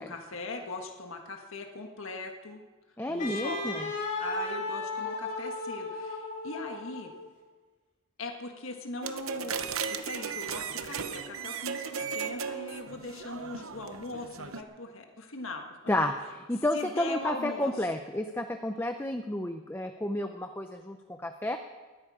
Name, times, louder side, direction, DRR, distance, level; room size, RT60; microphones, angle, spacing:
voice 1, 0.0-2.6 3.1-3.7 4.2-7.1 8.2-9.6 9.9-16.1 16.7-17.7, left 2 dB, 70° left, 3 dB, 1.5 m, -40 dB
voice 2, 3.0-3.9 15.9-21.6, left 1 dB, 10° left, 6 dB, 0.6 m, -31 dB
Wind instrument woodwind instrument, 3.2-7.3, left 2 dB, 35° left, 3.0 m, -35 dB
sound 1, 9.0-14.6, right 6 dB, 75° right, 0.9 m, -36 dB
20.0 x 13.5 x 4.9 m, 1.3 s
head